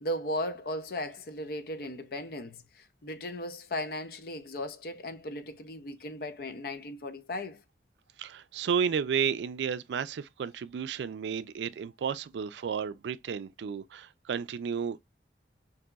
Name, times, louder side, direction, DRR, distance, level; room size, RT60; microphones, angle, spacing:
voice 1, 0.0-7.6, left 1 dB, 55° left, 0.5 m, -36 dB
voice 2, 8.2-15.0, right 7 dB, 80° right, 0.3 m, -32 dB
3.8 x 2.6 x 2.2 m
head